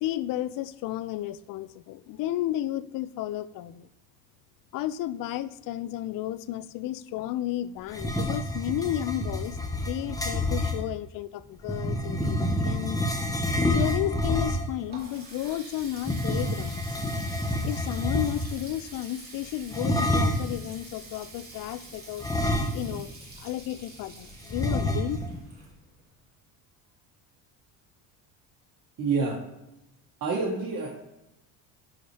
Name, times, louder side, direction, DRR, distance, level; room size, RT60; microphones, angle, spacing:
voice 1, 0.0-3.9 4.7-9.6 9.9-13.0 13.7-16.8 17.6-22.3 22.7-25.2, left 13 dB, 55° left, 16 dB, 0.5 m, -33 dB
sound 1, 7.9-10.8 11.7-14.8 16.0-18.6 19.7-20.6 22.2-23.1 23.4-23.5 24.5-25.4, left 1 dB, 10° left, 1.0 m, -28 dB
Water tap faucet, 14.5-26.1, right 2 dB, 25° right, 2.5 m, -47 dB
voice 2, 29.0-29.4 30.2-30.9, right 4 dB, 50° right, -3 dB, 1.7 m, -27 dB
10.5 x 4.2 x 3.3 m, 0.90 s
supercardioid pair, 100°, 40 cm